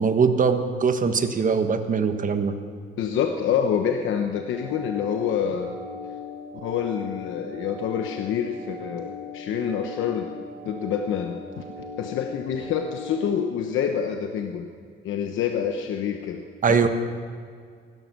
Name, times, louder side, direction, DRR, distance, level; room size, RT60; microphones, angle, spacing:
voice 1, 0.0-2.5 16.6-16.9, right 5 dB, 40° right, 7 dB, 1.4 m, -21 dB
voice 2, 3.0-5.8 6.6-10.3 10.6-11.6 12.0-14.7 15.0-16.4 16.7-16.9, left 8 dB, 80° left, 5 dB, 1.0 m, -27 dB
sound 1, 4.3-13.2, left 3 dB, 10° right, 4.8 m, -38 dB
16.5 x 12.5 x 6.1 m, 2.1 s
cardioid pair, 90°, 20 cm